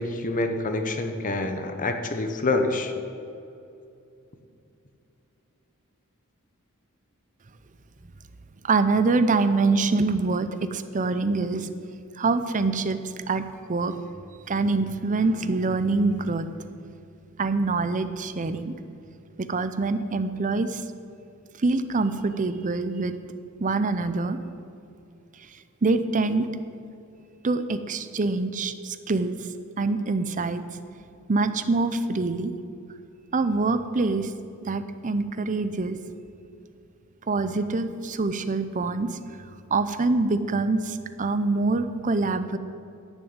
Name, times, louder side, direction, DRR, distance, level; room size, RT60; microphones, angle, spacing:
voice 1, 0.0-2.9, left 2 dB, 35° left, 6 dB, 0.9 m, -27 dB
voice 2, 8.6-11.7 12.2-13.9 14.5-16.7 17.4-18.7 19.4-20.8 21.6-23.1 23.6-24.4 25.8-26.5 27.4-29.3 29.8-30.6 31.3-32.5 33.3-34.3 34.6-36.0 37.3-39.2 39.7-42.6, right 3 dB, 35° right, 11 dB, 0.6 m, -25 dB
11.0 x 6.4 x 8.8 m, 2.6 s
head